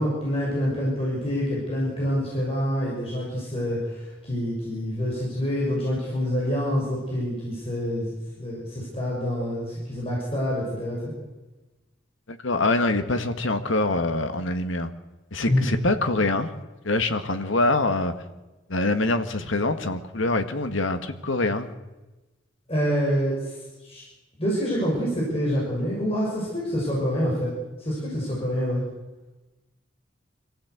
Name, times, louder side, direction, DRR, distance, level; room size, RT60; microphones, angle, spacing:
voice 1, 0.0-8.1 8.4-11.1 15.5-15.6 22.7-23.5 23.8-24.0 24.4-27.5 27.8-28.8, equal, 30° left, -5 dB, 6.3 m, -26 dB
voice 2, 12.3-14.9 15.3-16.5 16.8-18.1 18.7-21.7, left 2 dB, 85° left, 8 dB, 1.7 m, -24 dB
26.5 x 15.0 x 8.2 m, 1.1 s
head